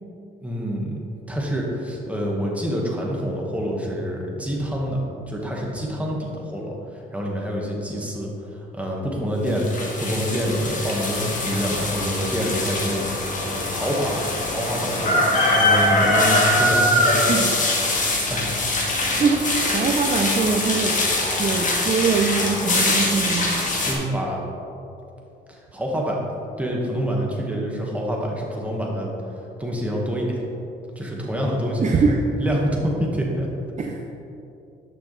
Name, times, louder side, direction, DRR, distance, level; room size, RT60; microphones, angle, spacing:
voice 1, 0.4-1.0 1.3-5.0 5.3-13.1 13.4-17.5 18.3-18.6 23.8-24.4 25.5-26.2 26.6-29.1 29.6-30.4 31.0-32.0 32.4-33.5, equal, 5° right, -2 dB, 1.7 m, -27 dB
sound 1, 9.5-23.9, left 1 dB, 40° left, 1.8 m, -22 dB
voice 2, 17.2-17.5 19.0-19.4 19.7-21.0 21.4-23.5 31.8-32.2 33.8-34.0, right 5 dB, 35° right, 3 dB, 0.6 m, -22 dB
11.0 x 6.5 x 3.3 m, 2.8 s
cardioid pair, 90°, 20 cm